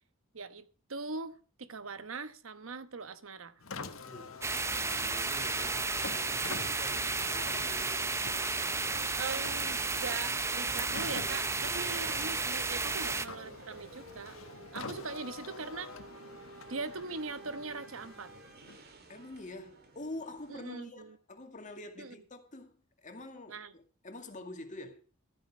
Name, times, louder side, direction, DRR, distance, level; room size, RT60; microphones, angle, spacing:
voice 1, 0.3-3.6 9.1-14.4 14.7-15.9 16.7-18.3 20.5-21.2 22.0-22.1 23.5-23.7, right 4 dB, 75° right, 1.1 m, -41 dB
Car, 3.6-19.0, left 4 dB, 80° left, 1.4 m, -47 dB
voice 2, 4.0-8.2 11.8-12.0 15.0-15.2 19.1-22.8 23.0-25.0, left 2 dB, 40° left, 2.2 m, -47 dB
sound 1, 4.4-13.3, right 3 dB, 15° right, 0.6 m, -33 dB
sound 2, 4.6-20.6, right 2 dB, 50° right, 1.8 m, -53 dB
13.5 x 9.4 x 5.5 m
head